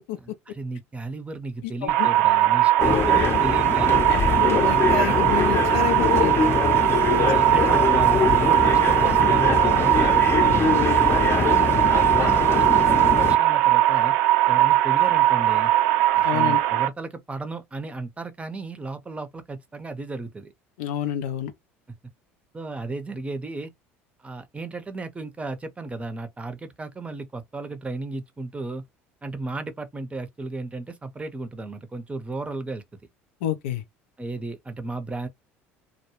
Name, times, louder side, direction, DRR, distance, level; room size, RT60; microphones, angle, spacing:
voice 1, 0.5-3.9 5.2-5.3 7.1-10.1 10.5-14.2 14.5-15.7 16.2-20.5 22.5-23.7 24.2-28.8 29.2-32.8 34.2-35.3, right 3 dB, 20° right, 0.6 m, -34 dB
voice 2, 1.6-2.1 4.1-6.4 10.3-10.9 16.2-16.6 20.8-21.5 33.4-33.8, left 11 dB, 75° left, 0.5 m, -29 dB
sound 1, 1.9-16.9, right 14 dB, 70° right, 0.4 m, -20 dB
sound 2, 2.8-13.4, left 5 dB, 35° left, 0.7 m, -24 dB
2.2 x 2.1 x 2.9 m
hypercardioid pair, 70°, 7 cm